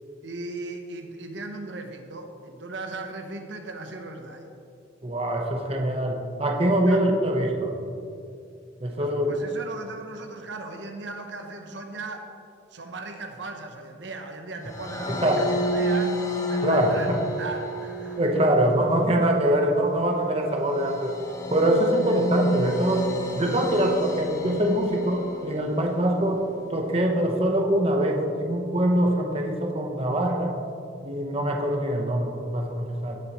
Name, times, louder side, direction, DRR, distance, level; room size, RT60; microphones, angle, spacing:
voice 1, 0.2-4.5 6.9-7.0 8.9-12.3 12.7-16.2 16.5-17.1 17.4-18.2, right 2 dB, 70° right, 4 dB, 0.9 m, -37 dB
voice 2, 5.0-7.8 8.8-9.4 15.1-15.4 16.6-17.2 18.2-21.2 21.5-23.1 23.3-26.4 26.7-30.6 31.0-33.2, right 1 dB, 30° right, 1 dB, 1.0 m, -23 dB
sound 1, 14.7-26.0, equal, 15° left, 1.1 m, -31 dB
17.0 x 7.5 x 3.1 m, 2.4 s
head